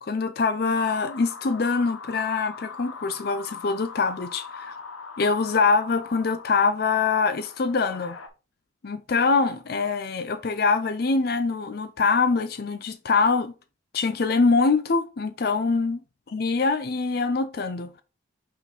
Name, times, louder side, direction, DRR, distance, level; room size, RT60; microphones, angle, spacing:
voice 1, 0.0-4.8 5.2-8.2 8.8-13.5 13.9-16.0 16.3-18.0, left 4 dB, 50° left, 0.5 m, -24 dB
sound 1, 0.7-8.3, left 5 dB, 90° left, 1.1 m, -41 dB
5.7 x 4.1 x 4.2 m
head